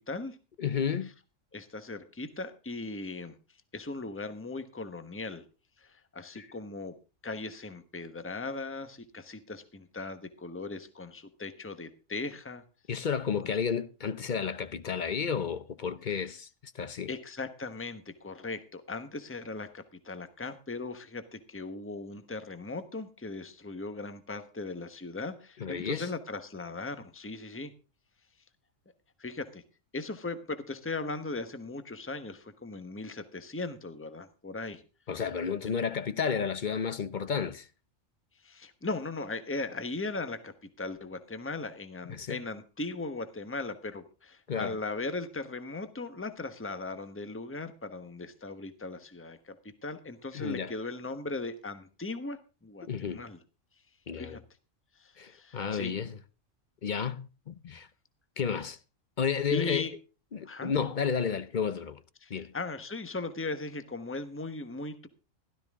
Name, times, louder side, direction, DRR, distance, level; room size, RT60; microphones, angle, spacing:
voice 1, 0.6-1.1 6.4-6.5 12.9-17.1 25.6-26.1 35.1-37.7 42.1-42.4 44.5-44.8 50.3-50.7 52.9-53.2 54.1-54.4 55.2-56.2 56.8-57.9 58.4-58.8 59.2-59.9 60.3-62.0 62.3-62.5, left 6 dB, 45° left, 0.7 m, -32 dB
voice 2, 1.5-3.4 3.7-5.4 5.8-6.9 7.2-12.6 13.4-13.5 17.1-27.7 29.2-29.6 29.9-34.8 35.7-35.8 38.4-49.6 49.8-53.4 54.2-54.4 55.0-56.0 59.5-59.9 60.5-60.7 62.2-65.1, left 3 dB, 10° left, 1.1 m, -38 dB
16.5 x 13.0 x 3.6 m
omnidirectional pair, 1.4 m